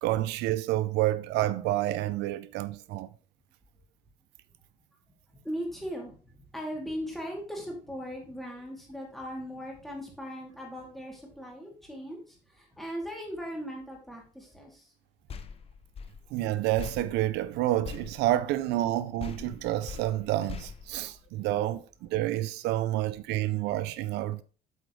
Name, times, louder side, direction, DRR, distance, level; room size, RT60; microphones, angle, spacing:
voice 1, 0.0-3.1 16.3-24.4, right 14 dB, 85° right, 0.4 m, -29 dB
voice 2, 5.3-14.9, equal, ahead, 2.6 m, -39 dB
sound 1, 15.3-18.9 19.2-21.7, left 6 dB, 35° left, 0.7 m, -43 dB
7.9 x 4.8 x 3.1 m
cardioid pair, 110°, 17 cm